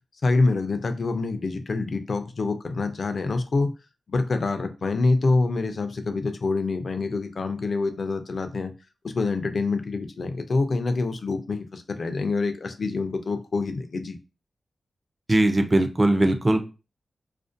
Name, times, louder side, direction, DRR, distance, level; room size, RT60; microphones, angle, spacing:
voice 1, 0.2-3.7 4.1-8.7 9.0-14.2, left 3 dB, 55° left, 7 dB, 0.3 m, -26 dB
voice 2, 15.3-16.6, right 1 dB, 25° right, 7 dB, 0.3 m, -20 dB
2.4 x 2.1 x 2.5 m, 0.30 s
wide cardioid pair, 125°, 0 cm